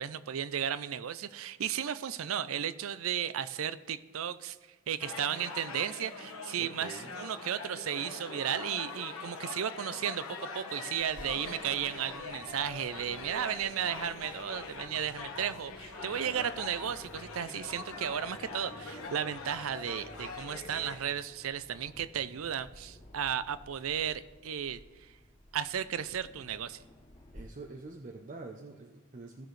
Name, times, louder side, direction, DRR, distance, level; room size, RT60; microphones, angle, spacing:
voice 1, 0.0-4.6 4.9-25.1 25.5-26.8, right 9 dB, 80° right, 15 dB, 0.5 m, -34 dB
sound 1, 5.0-21.0, left 4 dB, 90° left, 1.3 m, -43 dB
voice 2, 6.6-7.1 16.0-16.5 27.3-29.5, right 3 dB, 40° right, 2 dB, 0.7 m, -46 dB
Aircraft, 11.0-27.4, left 1 dB, 30° left, 2.2 m, -55 dB
17.0 x 6.2 x 3.3 m, 1.2 s
head